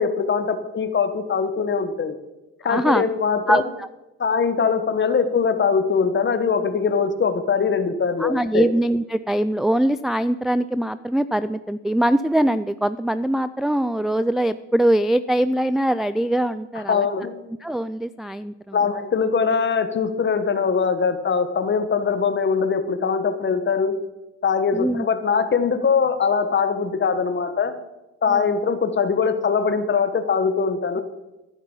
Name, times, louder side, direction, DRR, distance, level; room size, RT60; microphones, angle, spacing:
voice 1, 0.0-2.2 2.6-3.6 4.2-8.7 16.9-17.4 18.7-24.0 24.4-27.7 28.2-31.0, left 5 dB, 40° left, 9 dB, 1.3 m, -22 dB
voice 2, 2.7-3.0 3.5-3.9 8.2-17.1 17.6-18.8 24.7-25.1 28.3-28.5, right 1 dB, ahead, 12 dB, 0.3 m, -22 dB
12.5 x 11.0 x 5.5 m, 1.0 s
cardioid pair, 90°, 30 cm